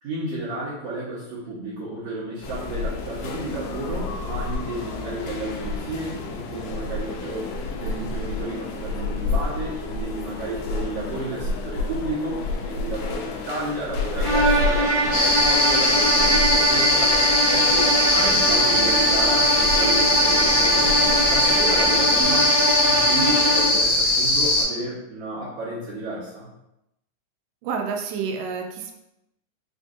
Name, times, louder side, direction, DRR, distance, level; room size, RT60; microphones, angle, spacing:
voice 1, 0.0-7.5 7.8-17.2 17.5-22.5 22.8-26.5, right 2 dB, 65° right, -10 dB, 1.7 m, -32 dB
sound 1, 2.4-22.3, left 3 dB, 90° left, 1.6 m, -31 dB
sound 2, 14.2-23.9, right 1 dB, 60° left, 2.4 m, -23 dB
sound 3, 15.1-24.6, left 1 dB, 45° left, 1.3 m, -20 dB
voice 2, 27.6-29.0, right 5 dB, 80° right, 3 dB, 2.1 m, -29 dB
5.1 x 2.5 x 2.5 m, 0.87 s
omnidirectional pair, 3.9 m